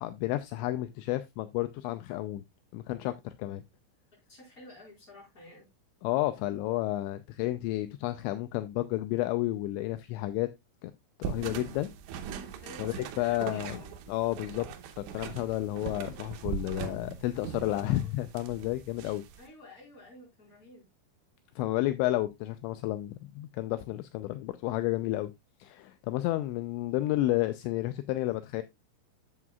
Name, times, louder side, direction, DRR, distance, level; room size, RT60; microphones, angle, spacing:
voice 1, 0.0-2.4 2.7-3.6 6.0-10.5 10.8-10.9 11.2-11.9 12.8-13.8 14.1-14.7 15.1-19.2 21.6-25.3 25.6-28.6, left 16 dB, 80° left, 2.8 m, -31 dB
voice 2, 4.1-5.7 12.6-14.0 17.7-18.1 19.4-20.9, left 2 dB, 20° left, 4.5 m, -51 dB
sound 1, 11.2-19.5, right 7 dB, 85° right, 3.3 m, -40 dB
11.0 x 7.8 x 2.3 m
omnidirectional pair, 5.3 m